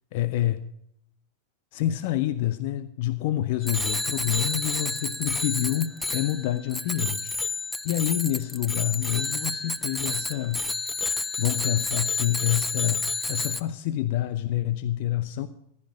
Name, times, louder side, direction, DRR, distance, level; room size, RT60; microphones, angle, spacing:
voice 1, 0.1-0.6 1.7-7.4 7.8-10.7 11.4-15.5, left 13 dB, 50° left, 12 dB, 0.7 m, -27 dB
Bicycle bell, 3.6-13.6, left 2 dB, 5° left, 0.6 m, -30 dB
15.5 x 12.5 x 4.9 m, 0.73 s
figure-of-eight pair, 90°, 0 cm